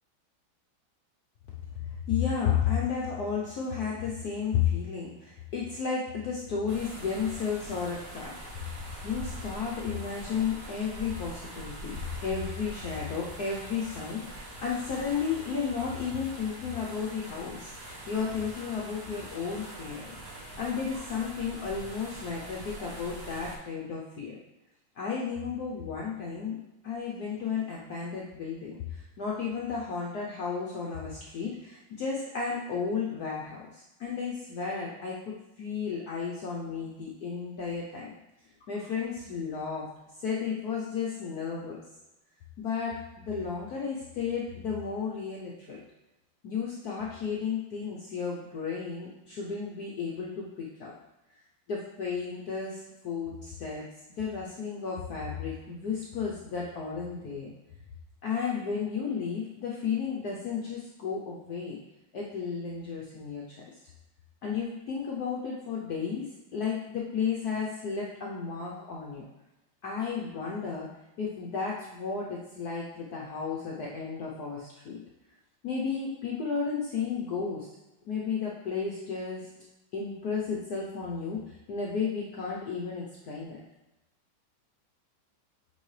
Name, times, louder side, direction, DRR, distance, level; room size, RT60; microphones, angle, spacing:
voice 1, 1.8-8.3 9.0-20.1 20.6-24.3 25.0-26.6 26.8-38.1 38.7-39.9 40.2-41.8 42.6-45.8 46.4-50.9 51.7-53.8 54.2-57.5 58.2-61.8 62.1-63.6 64.4-66.3 66.5-69.3 69.8-70.9 71.2-75.0 75.6-77.7 78.0-79.5 79.9-83.6, left 6 dB, 60° left, -3 dB, 1.0 m, -33 dB
sound 1, 6.7-23.6, right 1 dB, 55° right, 1.9 m, -43 dB
8.2 x 3.7 x 3.2 m, 0.98 s
omnidirectional pair, 2.3 m